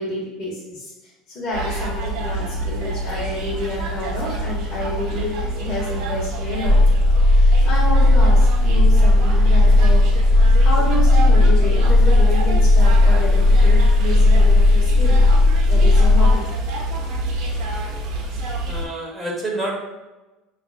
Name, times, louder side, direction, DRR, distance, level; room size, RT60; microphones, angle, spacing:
voice 1, 0.0-6.8 7.3-15.2 15.7-16.4, left 2 dB, 40° left, -7 dB, 1.2 m, -29 dB
sound 1, 1.5-18.9, right 1 dB, 60° right, 0.8 m, -27 dB
sound 2, 6.6-16.4, left 2 dB, 80° left, 0.7 m, -14 dB
voice 2, 18.6-19.7, right 1 dB, 10° right, -4 dB, 1.1 m, -28 dB
6.5 x 2.4 x 2.4 m, 1.1 s
cardioid pair, 140°, 0 cm